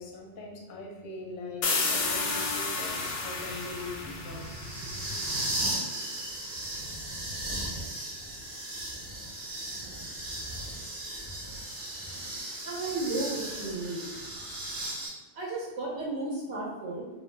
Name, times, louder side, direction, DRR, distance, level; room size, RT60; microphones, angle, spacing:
voice 1, 0.0-4.4, left 3 dB, 60° left, 0 dB, 0.6 m, -41 dB
sound 1, 1.6-5.2, left 3 dB, 85° left, 0.9 m, -31 dB
sound 2, 2.0-15.1, right 1 dB, 55° right, 0.8 m, -37 dB
voice 2, 12.6-14.0 15.3-17.1, right 2 dB, 85° right, -5 dB, 1.0 m, -34 dB
2.4 x 2.0 x 3.1 m, 1.2 s
omnidirectional pair, 1.2 m